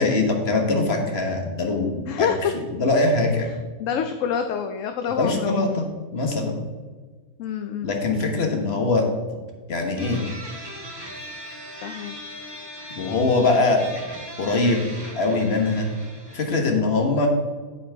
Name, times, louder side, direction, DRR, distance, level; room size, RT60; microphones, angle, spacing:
voice 1, 0.0-2.3 2.5-3.5 5.1-5.8 6.1-6.6 7.8-9.1 9.7-10.2 12.9-13.8 14.4-14.8 15.1-15.9 16.3-17.3, left 3 dB, 45° left, 3 dB, 1.5 m, -22 dB
voice 2, 2.1-2.5 3.8-5.6 7.4-7.9 11.8-12.2, left 8 dB, 65° left, 7 dB, 0.9 m, -27 dB
sound 1, 10.0-16.5, equal, 15° right, 1.6 m, -38 dB
8.5 x 8.5 x 3.5 m, 1.4 s
omnidirectional pair, 1.5 m